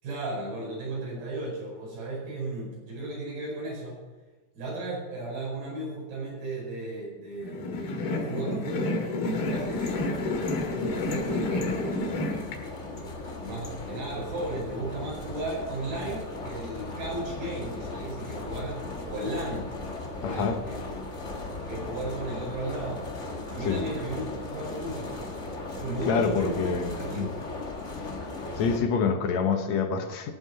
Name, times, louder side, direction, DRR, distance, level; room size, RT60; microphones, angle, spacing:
voice 1, 0.0-4.0 4.6-9.9 10.6-12.1 12.8-19.7 20.2-21.2 21.7-23.0 23.5-25.3 25.8-27.4, right 2 dB, 85° right, -4 dB, 6.9 m, -35 dB
sound 1, 7.4-12.6, left 2 dB, 90° left, 3.6 m, -30 dB
sound 2, 9.4-28.8, left 2 dB, 35° left, 1.1 m, -38 dB
voice 2, 20.2-20.6 23.7-23.8 26.1-27.3 28.6-30.3, left 5 dB, 65° left, 6 dB, 2.0 m, -26 dB
15.5 x 8.2 x 5.8 m, 1.3 s
omnidirectional pair, 4.2 m